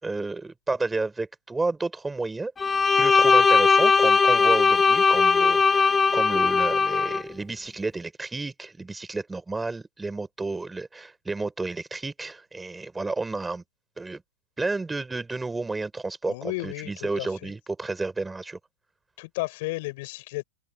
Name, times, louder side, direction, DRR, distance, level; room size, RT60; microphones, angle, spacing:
voice 1, 0.0-2.5 3.0-13.6 14.0-14.2 14.6-18.6, right 3 dB, 10° right, 5.2 m, -31 dB
Bowed string instrument, 2.6-7.2, left 5 dB, 15° left, 2.6 m, -19 dB
voice 2, 16.3-17.5 19.2-20.4, left 22 dB, 60° left, 7.1 m, -33 dB
hypercardioid pair, 120°, 0 cm